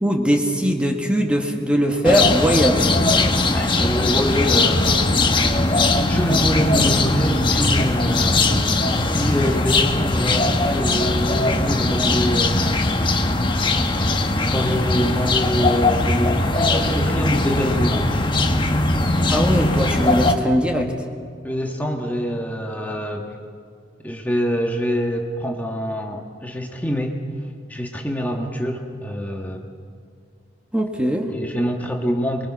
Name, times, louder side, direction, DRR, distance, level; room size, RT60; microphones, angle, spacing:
voice 1, 0.0-2.9 19.3-20.9 30.7-31.3, equal, 5° right, 2 dB, 1.6 m, -20 dB
sound 1, 2.0-20.3, left 2 dB, 25° left, 1.3 m, -20 dB
voice 2, 3.5-5.1 6.1-12.8 14.1-18.1 21.4-23.4 24.0-27.2 27.7-29.7 31.3-32.5, equal, 10° left, 1 dB, 1.5 m, -25 dB
24.5 x 23.0 x 5.9 m, 2.2 s
head